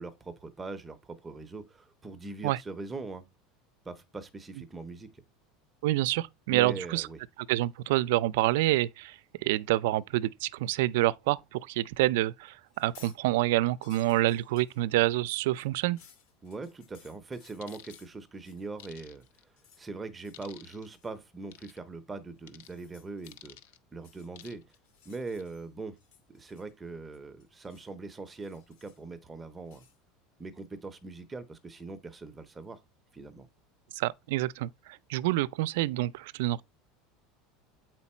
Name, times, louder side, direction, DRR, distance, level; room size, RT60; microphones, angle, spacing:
voice 1, 0.0-3.2 3.8-5.2 6.5-7.2 16.4-19.2 19.8-23.6 23.9-24.6 25.0-26.0 26.3-29.9 30.4-32.8 33.1-33.5, right 3 dB, 10° right, 0.6 m, -41 dB
voice 2, 5.8-7.1 7.5-16.0 34.0-36.6, right 16 dB, 75° right, 0.4 m, -27 dB
sound 1, 12.6-13.2 13.5-18.9 19.2-19.9 20.2-20.5 20.9-21.2 22.5-23.4 23.9-25.7 26.0-26.9 27.1-27.9 28.3-29.1 29.7-30.0, left 8 dB, 60° left, 1.7 m, -59 dB
sound 2, 17.6-18.0 18.8-19.4 20.3-20.9 21.5-21.8 22.5-22.7 23.3-23.8 24.4-24.8 25.2-25.4, left 11 dB, 90° left, 0.8 m, -51 dB
8.2 x 4.4 x 4.2 m
supercardioid pair, 170°, 0 cm